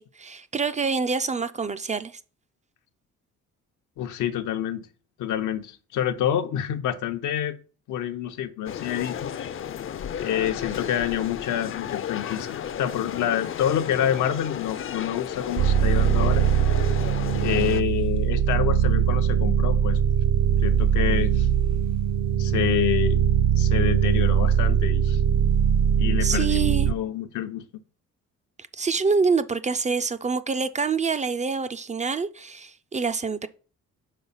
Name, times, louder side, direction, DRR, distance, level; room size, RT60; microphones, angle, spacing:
voice 1, 0.0-2.2 26.2-26.9 28.7-33.5, right 4 dB, 25° right, 0.4 m, -26 dB
voice 2, 4.0-4.9 5.2-7.6 7.9-9.3 10.2-16.4 17.4-20.0 20.6-21.5 22.4-23.2 23.6-25.2 26.0-27.7, left 10 dB, 80° left, 0.8 m, -27 dB
sound 1, 8.7-17.8, left 9 dB, 45° left, 0.5 m, -33 dB
sound 2, 15.6-26.9, right 8 dB, 65° right, 0.6 m, -21 dB
5.5 x 4.0 x 5.5 m
cardioid pair, 90°, 30 cm